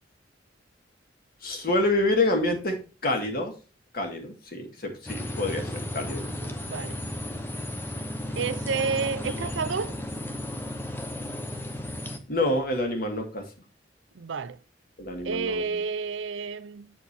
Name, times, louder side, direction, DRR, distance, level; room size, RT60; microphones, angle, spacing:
voice 1, 1.4-3.5 3.9-6.6 12.3-13.4 15.0-15.6, left 2 dB, 55° left, 1.8 m, -27 dB
sound 1, 5.1-12.2, left 1 dB, 10° left, 0.8 m, -34 dB
voice 2, 6.2-7.0 8.4-10.0 14.1-14.6 15.2-16.9, right 5 dB, 85° right, 0.6 m, -30 dB
8.2 x 4.5 x 4.3 m
head